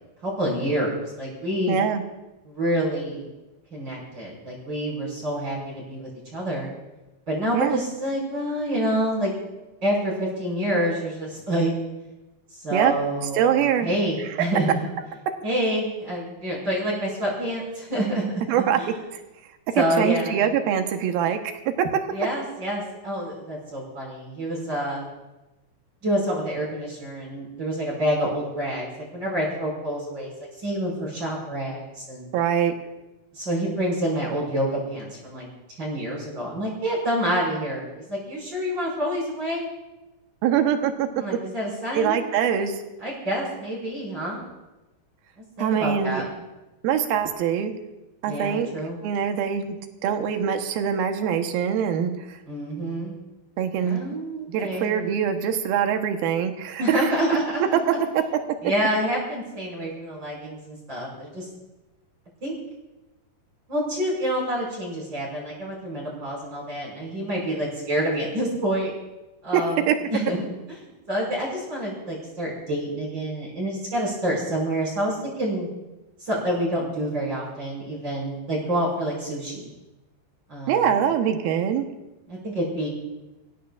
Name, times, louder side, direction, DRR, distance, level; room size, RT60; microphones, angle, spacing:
voice 1, 0.2-1.8 2.4-3.3 3.7-6.7 7.3-9.3 9.8-11.7 12.5-14.9 15.4-18.2 18.8-18.9 19.7-20.4 22.1-25.0 26.0-30.3 30.6-32.3 33.3-35.5 35.8-39.7 41.1-42.2 43.0-44.4 45.6-46.2 48.2-49.0 52.5-53.1 53.8-54.9 56.8-57.6 57.9-58.0 58.6-61.4 62.4-62.5 63.7-68.9 69.4-69.8 70.1-70.4 70.7-70.8 71.1-75.7 76.2-79.7 80.5-81.0 82.3-82.9, equal, 30° right, -4 dB, 6.2 m, -27 dB
voice 2, 1.7-2.0 7.5-7.8 12.7-12.9 13.3-13.9 18.5-18.8 19.8-21.4 21.8-21.9 32.3-32.7 40.4-41.1 41.9-42.8 45.6-46.2 46.8-47.7 48.2-48.7 49.0-49.8 50.0-52.4 53.6-54.0 54.5-57.1 58.1-58.2 69.5-70.0 80.7-81.8, right 8 dB, 75° right, 6 dB, 2.9 m, -23 dB
26.0 x 16.5 x 2.5 m, 1.0 s
omnidirectional pair, 4.5 m